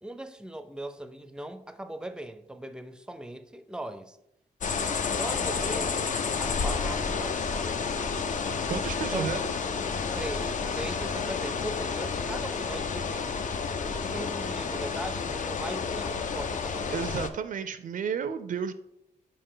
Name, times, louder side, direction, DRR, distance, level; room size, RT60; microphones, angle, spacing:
voice 1, 0.0-4.2 5.1-7.6 9.1-9.4 10.1-13.3 13.9-17.0, right 1 dB, 5° right, 0.4 m, -39 dB
sound 1, 4.6-17.3, left 5 dB, 60° left, 0.5 m, -30 dB
sound 2, 5.9-11.4, equal, 80° left, 1.4 m, -45 dB
voice 2, 8.7-9.5 16.9-18.7, right 7 dB, 70° right, 0.4 m, -32 dB
6.6 x 5.2 x 3.8 m
wide cardioid pair, 155°, 14 cm